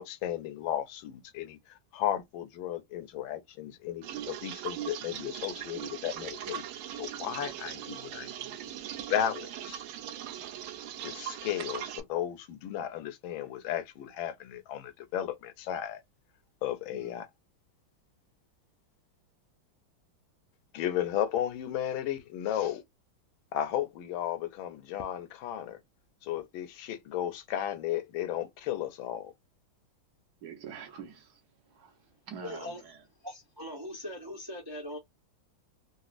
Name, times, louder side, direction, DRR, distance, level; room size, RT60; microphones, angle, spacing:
voice 1, 0.0-1.6 1.9-6.6 7.0-8.5 9.1-9.8 11.0-16.0 16.6-17.3 20.7-22.8 23.5-25.8 26.2-29.3, left 11 dB, 80° left, 1.4 m, -34 dB
sound 1, 4.0-12.0, right 10 dB, 90° right, 1.5 m, -40 dB
voice 2, 30.4-31.4 31.7-32.9, right 7 dB, 55° right, 1.3 m, -45 dB
voice 3, 32.4-32.8 33.2-35.0, left 1 dB, 35° right, 0.3 m, -40 dB
3.9 x 2.4 x 2.5 m
omnidirectional pair, 2.2 m